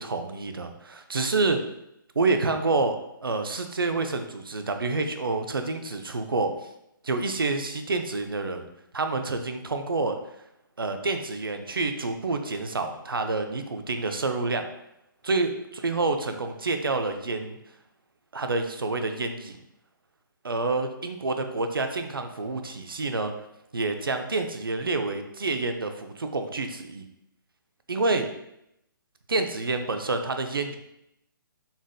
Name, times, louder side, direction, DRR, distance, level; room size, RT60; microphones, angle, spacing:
voice 1, 0.0-1.6 2.2-6.7 7.0-8.7 8.9-10.2 10.8-14.7 15.2-17.6 18.3-19.6 20.4-23.3 23.7-27.1 27.9-28.3 29.3-30.8, right 3 dB, 75° right, 6 dB, 0.5 m, -28 dB
4.0 x 3.5 x 2.2 m, 0.81 s
figure-of-eight pair, 140°, 12 cm